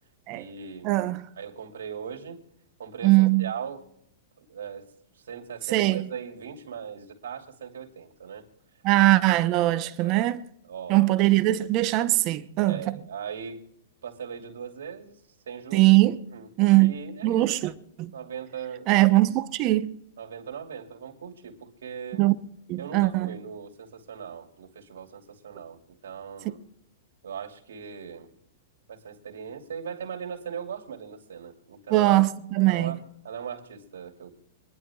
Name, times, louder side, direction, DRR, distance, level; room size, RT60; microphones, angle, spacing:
voice 1, 0.3-0.9 1.3-2.4 2.8-3.8 4.4-8.4 10.0-10.3 10.7-11.0 12.6-13.6 14.0-15.2 15.5-15.9 16.3-16.5 16.7-17.7 18.1-19.0 20.2-22.2 22.8-26.6 27.2-28.3 28.9-32.1 32.7-34.3, right 7 dB, 90° right, 2.9 m, -39 dB
voice 2, 0.8-1.2 3.0-3.5 5.7-6.0 8.8-10.4 10.9-13.0 15.7-16.2 16.6-16.9 17.2-17.7 18.0-18.1 18.9-19.9 22.2-22.3 22.7-23.3 31.9-33.0, right 18 dB, 40° right, 0.9 m, -21 dB
26.5 x 11.0 x 2.4 m
hypercardioid pair, 140°, 0 cm